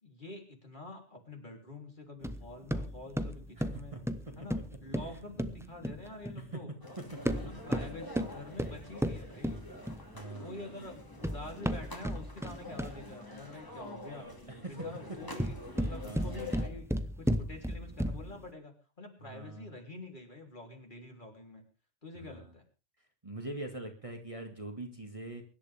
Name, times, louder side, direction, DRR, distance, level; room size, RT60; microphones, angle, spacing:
voice 1, 0.0-4.0 4.4-6.7 7.3-9.7 10.4-14.3 14.7-16.9 17.2-21.6 22.0-22.6, left 2 dB, 40° left, 2 dB, 3.7 m, -47 dB
sound 1, 2.2-6.4 7.1-10.2 10.9-13.1 15.2-18.4, equal, 5° right, 0.8 m, -34 dB
voice 2, 3.6-4.0 5.0-5.2 6.4-6.5 10.1-10.6 14.5-14.7 16.0-16.5 19.2-19.7 22.2-22.5 23.2-25.4, right 2 dB, 25° right, 3 dB, 2.1 m, -43 dB
sound 2, 6.8-16.7, left 2 dB, 15° left, 2.5 m, -46 dB
24.0 x 11.5 x 3.5 m, 0.33 s
omnidirectional pair, 1.3 m